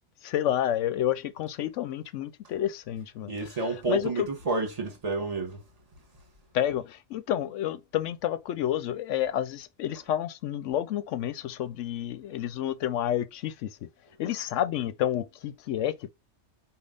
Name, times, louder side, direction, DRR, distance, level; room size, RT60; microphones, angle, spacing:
voice 1, 0.2-3.3 3.9-4.3 6.5-13.9 14.2-16.1, left 11 dB, 85° left, 0.9 m, -30 dB
voice 2, 3.3-5.6, right 3 dB, 30° right, 1.4 m, -30 dB
5.3 x 2.4 x 3.8 m
omnidirectional pair, 1.3 m